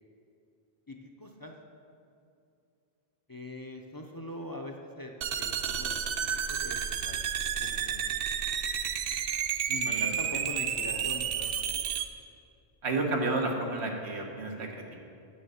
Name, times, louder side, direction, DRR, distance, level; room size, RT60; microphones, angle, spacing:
voice 1, 0.9-1.5 3.3-6.1 6.5-6.8 7.0-7.2 7.6-8.1 9.7-11.5, left 1 dB, 25° left, 1 dB, 0.5 m, -42 dB
sound 1, 5.2-12.1, right 8 dB, 65° right, 0.7 m, -31 dB
voice 2, 12.8-15.0, right 2 dB, 85° right, 1 dB, 1.5 m, -31 dB
9.3 x 6.3 x 6.9 m, 2.5 s
omnidirectional pair, 1.1 m